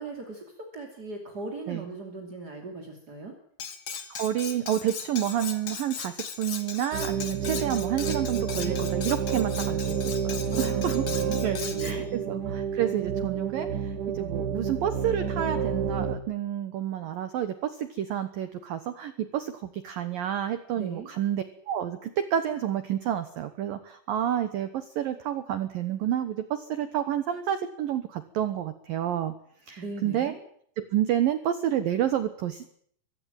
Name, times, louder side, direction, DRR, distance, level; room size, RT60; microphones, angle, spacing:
voice 1, 0.0-3.3 10.5-12.1 20.7-21.1 29.8-30.4, right 3 dB, 30° right, 2 dB, 2.2 m, -39 dB
Cutlery silverware, 3.6-12.0, left 7 dB, 50° left, 2.2 m, -38 dB
voice 2, 4.1-11.0 11.4-29.3 29.7-30.3 30.8-32.6, right 10 dB, 85° right, 11 dB, 2.0 m, -29 dB
sound 1, 6.9-16.1, right 7 dB, 60° right, 2.2 m, -29 dB
24.0 x 16.0 x 9.2 m, 0.63 s
omnidirectional pair, 6.0 m